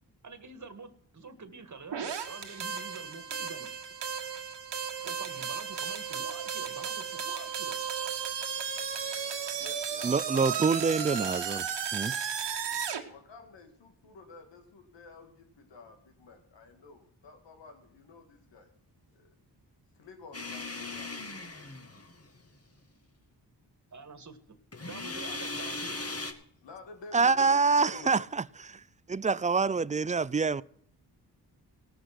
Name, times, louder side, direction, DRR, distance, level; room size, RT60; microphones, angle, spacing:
voice 1, 0.2-3.7 5.0-7.8 10.3-10.9 23.9-26.0, right 4 dB, 40° right, 1.8 m, -46 dB
sound 1, 1.9-13.0, right 7 dB, 75° right, 1.6 m, -34 dB
voice 2, 9.5-10.7 13.1-18.7 19.1-19.3 19.9-21.1 26.6-28.3, left 3 dB, 85° left, 1.9 m, -51 dB
voice 3, 10.0-11.7 11.9-12.1 27.1-28.4 29.1-30.6, right 4 dB, 20° right, 0.4 m, -26 dB
sound 2, 20.3-22.4 24.7-26.3, left 3 dB, 35° left, 2.0 m, -38 dB
18.0 x 6.8 x 5.9 m
cardioid pair, 45°, 43 cm